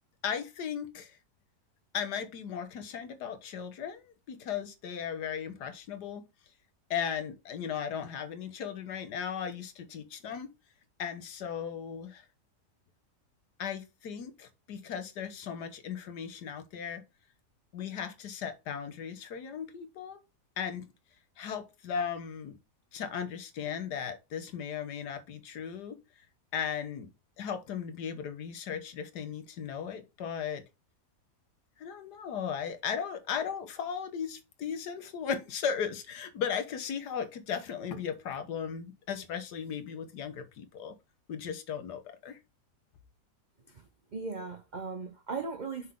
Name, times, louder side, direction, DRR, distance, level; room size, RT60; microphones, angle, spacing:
voice 1, 0.2-1.2 1.9-6.3 6.9-10.5 11.0-12.3 13.6-17.0 17.7-20.2 20.6-20.9 21.4-22.6 22.9-26.3 26.5-27.1 27.4-30.6 31.8-41.0 41.3-42.4, left 7 dB, 80° left, 1.6 m, -36 dB
voice 2, 43.7-45.9, right 4 dB, 45° right, 0.6 m, -38 dB
6.3 x 5.7 x 3.6 m
omnidirectional pair, 1.7 m